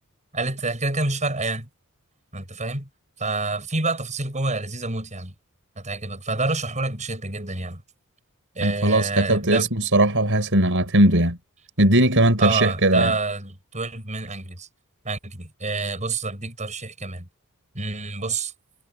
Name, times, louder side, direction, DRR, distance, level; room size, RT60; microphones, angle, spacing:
voice 1, 0.3-1.7 2.3-2.9 3.2-5.3 5.8-7.8 8.5-9.7 12.4-14.7 15.0-17.3 17.7-18.5, right 3 dB, 35° right, 7.8 m, -28 dB
voice 2, 8.6-11.4 11.8-13.1, right 1 dB, 60° right, 6.7 m, -19 dB
head